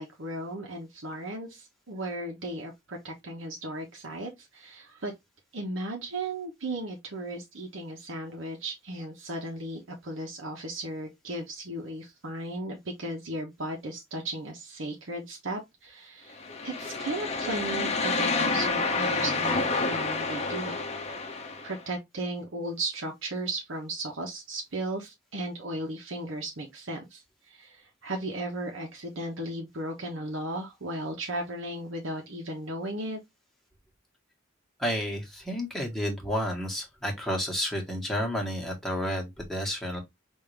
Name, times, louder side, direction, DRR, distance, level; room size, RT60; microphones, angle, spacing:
voice 1, 0.0-5.1 5.5-20.8 21.6-33.2, right 1 dB, 70° right, 1.0 m, -36 dB
sound 1, 16.4-21.8, left 3 dB, 30° left, 0.8 m, -29 dB
voice 2, 34.8-40.0, equal, ahead, 1.4 m, -31 dB
5.4 x 2.7 x 3.3 m
head